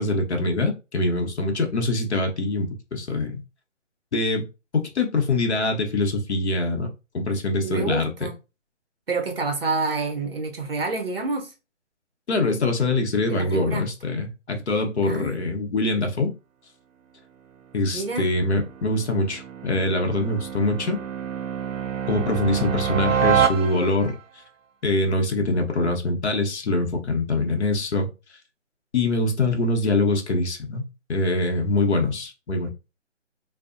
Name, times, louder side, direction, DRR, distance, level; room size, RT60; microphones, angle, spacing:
voice 1, 0.0-3.4 4.1-4.5 4.7-6.9 7.1-8.1 12.3-16.3 17.7-21.0 22.1-24.1 24.8-28.1 28.9-32.7, left 2 dB, 60° left, 0.7 m, -24 dB
voice 2, 7.6-8.3 9.1-11.5 13.3-13.8 15.0-15.4 17.9-18.3, right 3 dB, 50° right, 0.7 m, -28 dB
sound 1, 17.8-24.2, right 8 dB, 90° right, 0.5 m, -27 dB
2.6 x 2.0 x 2.4 m
hypercardioid pair, 170°, 37 cm